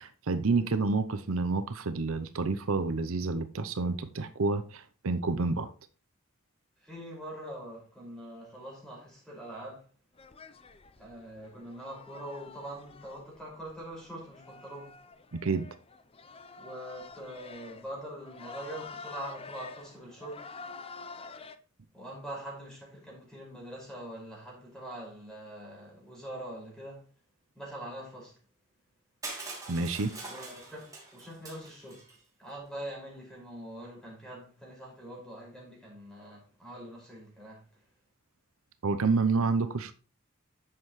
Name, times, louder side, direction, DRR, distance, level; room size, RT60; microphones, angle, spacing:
voice 1, 0.0-5.7 15.3-15.7 29.7-30.1 38.8-39.9, right 4 dB, 75° right, 0.7 m, -29 dB
voice 2, 6.8-9.9 11.0-15.0 16.6-20.5 21.9-27.1 27.6-28.4 30.2-32.1 32.4-37.6, right 1 dB, 5° left, 5.4 m, -43 dB
sound 1, 10.2-21.6, left 4 dB, 25° left, 0.6 m, -48 dB
Crushing, 29.2-32.2, right 3 dB, 15° right, 2.8 m, -43 dB
11.0 x 7.6 x 3.1 m
head